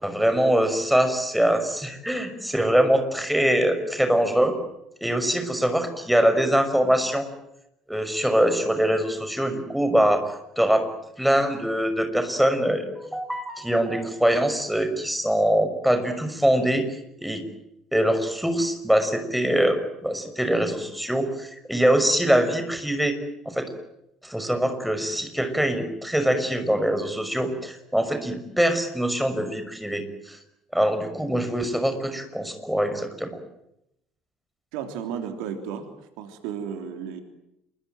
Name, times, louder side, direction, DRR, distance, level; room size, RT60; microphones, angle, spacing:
voice 1, 0.0-4.6 5.0-7.3 7.9-10.2 10.6-10.8 11.2-16.8 17.2-17.4 17.9-23.2 23.4-23.7 24.2-30.4 30.7-33.4, right 1 dB, ahead, 7 dB, 6.2 m, -23 dB
voice 2, 34.7-35.9 36.2-37.2, right 8 dB, 65° right, 7 dB, 3.4 m, -33 dB
27.5 x 23.5 x 9.3 m, 0.82 s
figure-of-eight pair, 55°, 0 cm